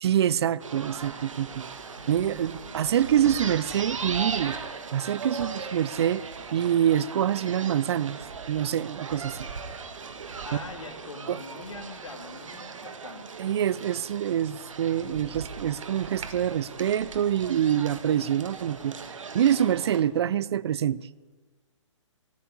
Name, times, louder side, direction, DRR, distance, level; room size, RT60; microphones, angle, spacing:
voice 1, 0.0-1.7 2.1-4.6 4.9-8.2 8.5-9.5 11.3-11.4 13.4-21.1, right 10 dB, 55° right, 0.5 m, -26 dB
sound 1, 0.6-20.0, right 5 dB, 75° right, 1.6 m, -39 dB
voice 2, 1.8-2.8 10.4-13.3, left 3 dB, 75° left, 2.1 m, -43 dB
14.5 x 7.0 x 9.6 m
hypercardioid pair, 135°, 17 cm